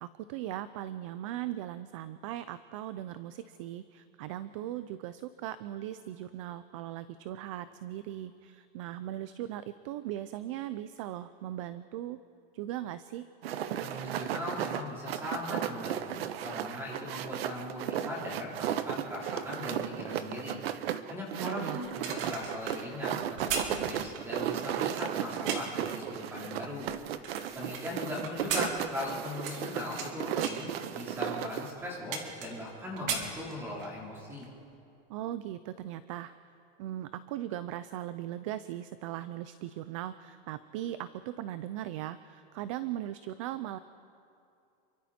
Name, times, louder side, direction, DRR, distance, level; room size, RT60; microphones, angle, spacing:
voice 1, 0.0-12.2 12.5-13.3 21.4-21.8 35.1-36.3 36.8-43.8, right 13 dB, 35° right, 14 dB, 0.4 m, -39 dB
sound 1, 13.4-31.7, right 10 dB, 90° right, 1.1 m, -35 dB
voice 2, 13.8-16.1 16.4-20.6 21.1-26.9 27.5-34.5, left 1 dB, 10° right, -4 dB, 3.7 m, -39 dB
sound 2, 21.8-25.8 26.4-27.8 28.2-30.1 30.4-30.7 31.3-31.4 31.7-32.7 33.0-34.0 34.3-34.5, right 6 dB, 70° right, 3.2 m, -37 dB
28.5 x 24.0 x 4.3 m, 2.6 s
supercardioid pair, 180°, 30 cm